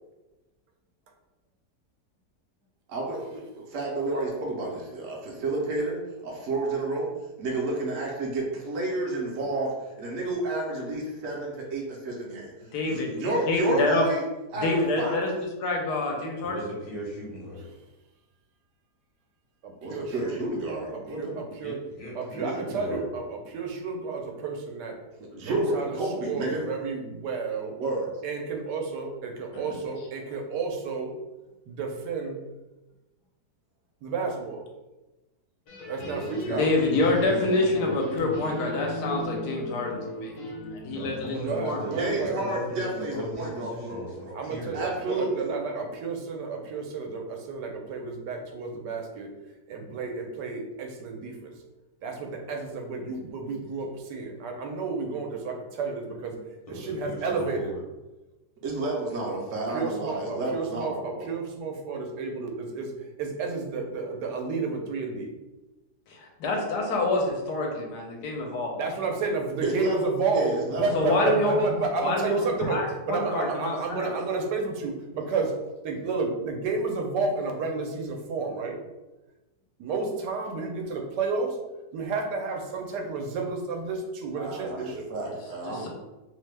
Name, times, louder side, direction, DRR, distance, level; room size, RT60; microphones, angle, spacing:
voice 1, 2.9-7.1 7.4-12.5 12.8-14.2 14.5-15.3 19.8-21.4 25.2-26.7 27.8-28.1 41.9-44.4 44.7-45.5 58.6-61.3 69.6-71.2 84.3-85.9, right 2 dB, 65° right, -2 dB, 0.8 m, -30 dB
voice 2, 12.7-13.2 13.5-14.0 14.6-16.6 29.7-29.8 36.5-40.3 40.7-41.8 66.1-68.7 70.9-71.7 72.0-74.1 85.6-85.9, left 2 dB, 80° left, 0 dB, 1.2 m, -27 dB
voice 3, 16.4-17.7 21.6-23.1 36.0-38.0 40.9-44.8 56.7-57.8, equal, 30° left, -7 dB, 0.7 m, -38 dB
voice 4, 19.6-20.4 20.9-21.8 22.1-25.0 25.4-26.0 26.3-27.7 28.2-31.1 31.7-32.4 34.0-34.6 35.9-36.8 41.4-42.4 44.3-49.3 49.7-51.5 52.0-56.3 56.7-57.7 59.7-62.9 63.2-65.3 68.8-70.4 70.8-75.5 75.8-78.8 79.8-81.6 81.9-85.0, right 4 dB, 85° right, 2 dB, 1.2 m, -31 dB
sound 1, 35.7-41.3, left 1 dB, 60° left, 1.1 m, -37 dB
3.0 x 2.1 x 3.2 m, 1.1 s
omnidirectional pair, 1.8 m